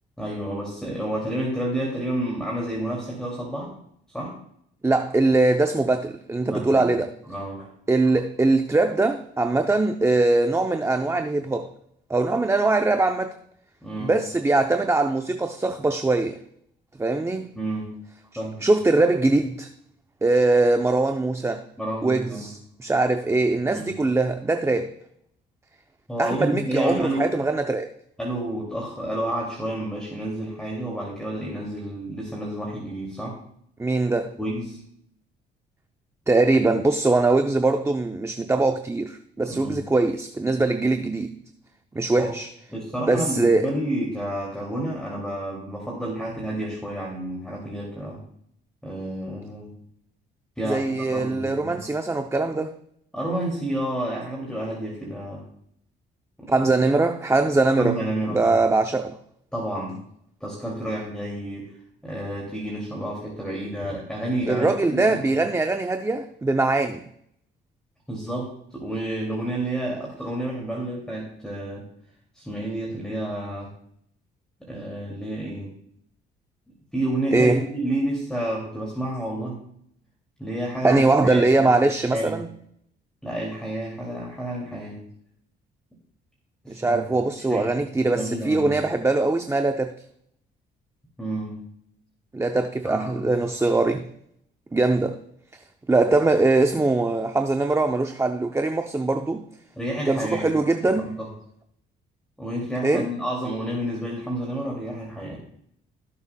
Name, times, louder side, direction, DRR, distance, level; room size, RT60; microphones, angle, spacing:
voice 1, 0.2-3.7 4.1-4.4 6.4-6.9 7.3-7.7 13.8-14.2 17.5-17.9 18.4-18.6 21.8-22.5 23.6-23.9 26.1-27.3 28.2-33.4 34.4-34.8 39.5-39.8 42.2-42.3 42.7-48.2 48.8-49.7 50.6-51.9 53.1-55.4 56.4-56.7 57.8-58.7 59.5-60.0 60.4-61.7 62.0-65.2 68.1-71.9 72.3-73.7 74.6-75.7 76.9-79.6 80.4-82.4 83.2-85.0 86.6-87.0 87.5-88.7 91.2-91.6 92.8-93.3 99.8-100.5 100.9-101.3 102.4-105.4, right 1 dB, 5° left, 2.5 m, -30 dB
voice 2, 4.8-7.1 7.9-11.7 12.1-13.3 14.0-16.4 17.0-17.5 18.3-19.7 20.2-21.6 22.0-24.9 26.2-27.9 33.8-34.3 36.3-41.4 41.9-42.5 43.1-43.7 50.6-52.7 56.5-58.0 58.3-59.2 64.5-67.0 77.3-77.7 80.8-82.5 86.7-90.0 92.3-94.1 94.7-95.2 95.5-95.6 95.9-99.5 100.1-101.2 102.8-103.1, right 2 dB, 15° right, 0.6 m, -22 dB
17.0 x 7.0 x 2.3 m
cardioid pair, 90°, 20 cm